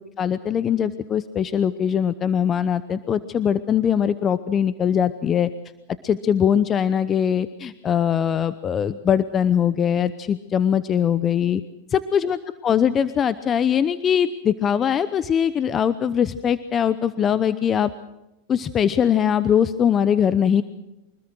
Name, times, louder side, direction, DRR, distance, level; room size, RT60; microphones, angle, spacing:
voice 1, 0.2-5.5 6.0-11.6 11.9-17.9 18.5-20.6, left 8 dB, 25° left, 14 dB, 0.8 m, -21 dB
25.0 x 20.0 x 6.2 m, 0.95 s
hypercardioid pair, 120°, 0 cm